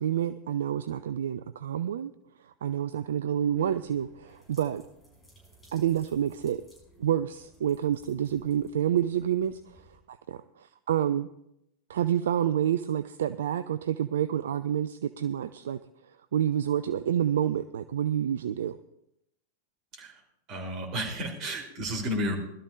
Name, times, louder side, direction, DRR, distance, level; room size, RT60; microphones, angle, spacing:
voice 1, 0.0-2.1 2.4-4.8 5.7-6.6 7.0-11.3 11.9-15.8 16.3-18.8, right 10 dB, 60° right, 13 dB, 0.4 m, -28 dB
sound 1, 3.3-10.0, right 1 dB, 15° left, 6.1 m, -58 dB
voice 2, 20.5-22.4, equal, 35° right, 0 dB, 3.1 m, -32 dB
20.5 x 12.5 x 2.5 m, 0.80 s
figure-of-eight pair, 90°, 0 cm